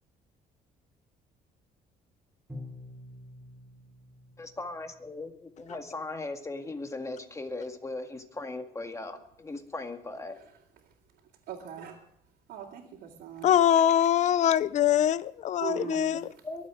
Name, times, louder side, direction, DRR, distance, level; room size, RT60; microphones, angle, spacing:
Bowed string instrument, 2.5-5.3, left 2 dB, ahead, 4.0 m, -47 dB
voice 1, 4.4-10.4 16.4-16.7, left 2 dB, 20° left, 1.9 m, -38 dB
voice 2, 11.5-12.0 12.5-13.5 15.6-16.1, right 8 dB, 75° right, 2.8 m, -39 dB
voice 3, 13.4-16.3, left 10 dB, 45° left, 0.5 m, -23 dB
23.0 x 8.2 x 4.9 m
cardioid pair, 110°, 17 cm